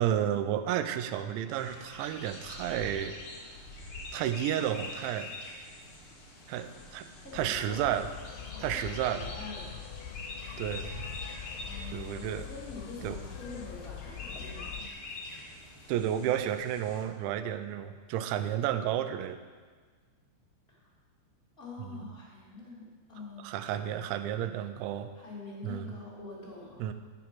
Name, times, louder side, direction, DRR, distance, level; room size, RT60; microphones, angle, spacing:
voice 1, 0.0-3.2 4.1-5.3 6.5-7.1 7.3-8.1 8.6-9.3 10.6-10.9 11.9-12.5 13.0-13.2 15.9-19.4 21.8-22.1 23.4-25.1 25.6-25.9 26.8-26.9, right 10 dB, 85° right, 10 dB, 2.9 m, -31 dB
sound 1, 1.5-17.0, left 2 dB, 65° left, 1.3 m, -45 dB
voice 2, 6.6-7.8 8.5-9.7 11.5-14.9 20.7-20.9 21.6-24.0 25.1-26.9, left 3 dB, 20° left, -6 dB, 1.5 m, -46 dB
sound 2, 7.3-14.9, left 10 dB, 85° left, 2.8 m, -44 dB
10.0 x 7.5 x 6.0 m, 1.5 s
omnidirectional pair, 5.3 m